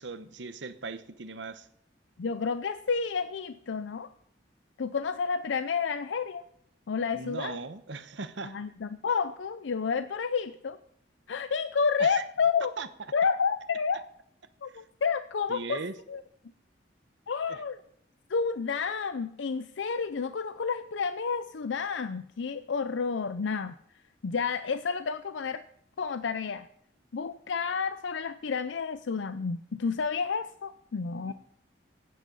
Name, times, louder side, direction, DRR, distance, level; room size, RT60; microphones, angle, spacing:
voice 1, 0.0-1.7 7.1-8.6 12.0-12.2 12.8-12.9 15.5-16.0 17.5-17.6 31.3-31.4, right 4 dB, 80° right, 12 dB, 1.0 m, -38 dB
voice 2, 2.2-4.1 4.8-6.4 6.9-7.6 8.4-10.8 11.3-12.7 13.1-14.0 14.6-15.8 16.1-16.2 17.3-17.8 18.3-23.7 24.2-25.7 26.0-26.7 27.1-31.3, left 5 dB, 85° left, 12 dB, 0.5 m, -30 dB
16.5 x 9.6 x 5.4 m, 0.70 s
head